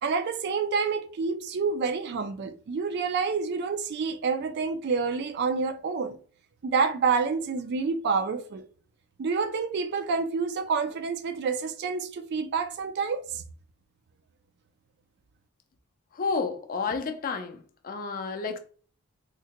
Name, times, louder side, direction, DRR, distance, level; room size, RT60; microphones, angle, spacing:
voice 1, 0.0-6.2 6.6-8.7 9.2-13.4, right 5 dB, 50° right, 0.3 m, -28 dB
voice 2, 16.2-17.6 17.8-18.6, left 4 dB, 40° left, 0.4 m, -30 dB
3.7 x 2.1 x 2.8 m
head